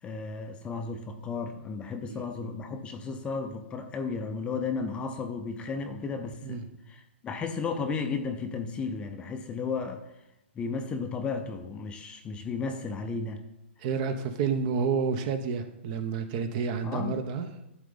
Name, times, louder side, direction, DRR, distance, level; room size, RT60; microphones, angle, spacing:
voice 1, 0.0-6.6 6.9-10.1 10.5-13.4 16.8-17.2, left 4 dB, 15° left, 6 dB, 0.6 m, -34 dB
voice 2, 13.8-17.5, right 5 dB, 40° right, 9 dB, 0.9 m, -29 dB
11.5 x 3.9 x 5.5 m, 0.87 s
hypercardioid pair, 150°, 7 cm